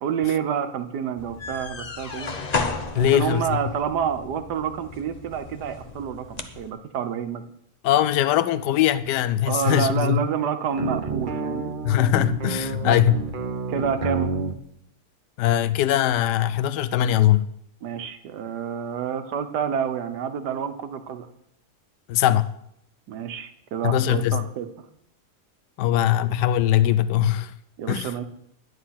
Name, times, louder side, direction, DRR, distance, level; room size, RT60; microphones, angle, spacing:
voice 1, 0.0-2.3 2.9-7.4 9.5-11.7 12.8-13.0 13.7-14.3 17.8-21.3 23.1-24.7 27.8-28.3, right 7 dB, 80° right, 1.5 m, -28 dB
sound 1, 1.2-6.7, left 4 dB, 35° left, 0.7 m, -34 dB
voice 2, 2.9-3.6 7.8-10.2 11.8-13.1 15.4-17.5 22.1-22.5 23.8-24.4 25.8-27.5 27.9-28.1, left 11 dB, 90° left, 1.2 m, -21 dB
sound 2, 10.7-14.6, right 4 dB, 40° right, 0.8 m, -29 dB
10.5 x 9.5 x 5.8 m
omnidirectional pair, 1.7 m